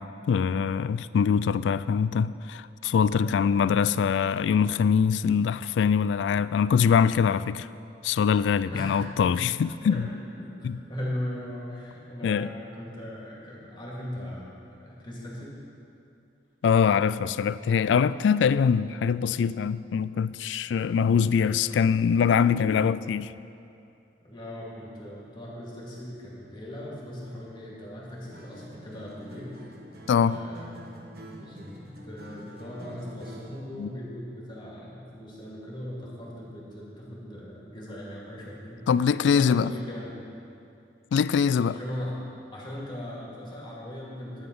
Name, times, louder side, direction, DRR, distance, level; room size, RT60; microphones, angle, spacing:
voice 1, 0.0-7.7 8.0-10.1 10.6-10.8 12.2-12.5 16.6-23.4 30.1-30.4 33.8-33.9 38.9-39.7 41.1-41.8, left 6 dB, 85° left, 16 dB, 0.3 m, -23 dB
voice 2, 10.9-15.6 21.2-21.8 22.4-22.6 24.2-29.5 30.2-30.9 31.2-38.8 39.3-40.2 41.7-42.2 42.5-44.5, left 1 dB, 25° left, -5 dB, 2.2 m, -39 dB
Acoustic guitar, 28.3-33.7, equal, 60° right, 1.3 m, -46 dB
11.5 x 9.0 x 5.4 m, 2.6 s
head